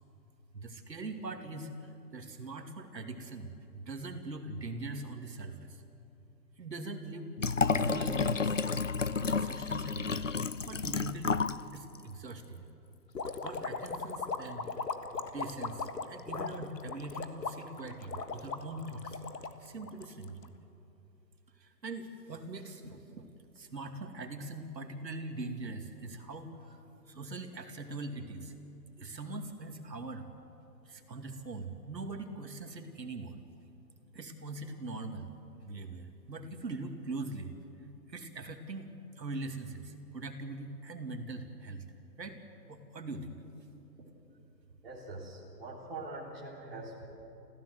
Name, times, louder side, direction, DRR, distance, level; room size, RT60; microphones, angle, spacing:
voice 1, 0.5-5.8 6.6-7.3 7.7-8.6 9.2-10.2 10.7-11.4 11.7-12.6 13.4-14.7 15.3-19.2 19.6-20.5 21.6-23.3 23.5-26.8 27.1-28.5 29.0-30.3 30.9-33.4 34.1-35.3 35.6-37.5 38.1-38.9 39.2-41.9 42.2-42.4 42.7-43.4, right 2 dB, 75° right, 5 dB, 2.7 m, -42 dB
Liquid, 7.4-11.6 11.9-12.0, left 5 dB, 50° left, 0.5 m, -31 dB
sound 1, 13.1-20.5, left 4 dB, 70° left, 1.7 m, -38 dB
voice 2, 44.8-47.1, right 2 dB, 35° right, -5 dB, 3.4 m, -43 dB
28.5 x 15.5 x 8.0 m, 2.8 s
hypercardioid pair, 180°, 50 cm